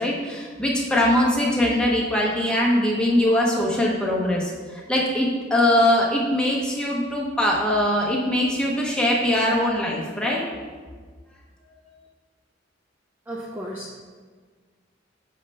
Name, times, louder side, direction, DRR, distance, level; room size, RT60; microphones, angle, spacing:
voice 1, 0.0-10.4, left 1 dB, 5° left, -4 dB, 1.0 m, -22 dB
voice 2, 13.3-14.0, right 1 dB, 10° right, -3 dB, 0.5 m, -34 dB
6.7 x 5.4 x 3.2 m, 1.5 s
head